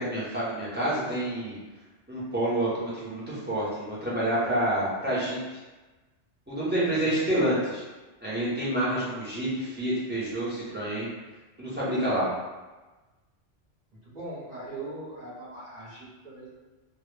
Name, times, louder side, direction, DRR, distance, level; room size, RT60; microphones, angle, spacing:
voice 1, 0.0-1.6 2.1-5.6 6.5-7.8 8.2-11.1 11.6-12.3, right 1 dB, 20° right, -9 dB, 0.3 m, -28 dB
voice 2, 6.6-7.2 14.0-16.5, right 2 dB, 45° right, -7 dB, 0.6 m, -41 dB
2.1 x 2.0 x 3.1 m, 1.2 s
omnidirectional pair, 1.2 m